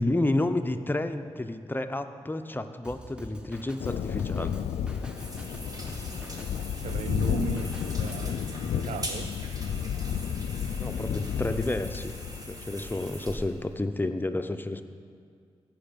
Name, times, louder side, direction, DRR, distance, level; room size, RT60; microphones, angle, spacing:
voice 1, 0.0-4.5 10.8-12.1 12.5-14.8, left 2 dB, 20° left, 0.7 m, -30 dB
Drum kit, 2.8-8.2, equal, 10° right, 1.1 m, -45 dB
Thunder, 3.8-13.4, left 8 dB, 75° left, 0.4 m, -32 dB
sound 1, 5.1-13.4, right 1 dB, 35° right, 1.7 m, -42 dB
voice 2, 6.8-8.4 8.7-9.4, right 7 dB, 80° right, 0.4 m, -37 dB
15.5 x 5.3 x 5.2 m
cardioid pair, 50°, 11 cm